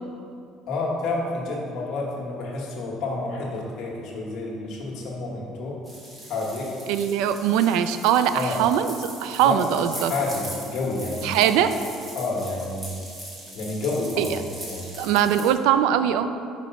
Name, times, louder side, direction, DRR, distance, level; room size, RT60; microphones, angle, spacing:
voice 1, 0.7-5.8 6.3-6.7 8.3-8.6 9.4-9.6 10.1-11.6 12.1-13.0 13.5-14.3 14.7-14.9, left 3 dB, 50° left, -3 dB, 1.4 m, -29 dB
sound 1, 5.9-15.5, right 1 dB, 20° right, 1.5 m, -40 dB
voice 2, 6.9-10.1 11.2-11.7 14.2-14.3 15.0-16.3, right 10 dB, 80° right, 11 dB, 0.3 m, -21 dB
5.6 x 5.0 x 5.3 m, 2.5 s
cardioid pair, 165°, 0 cm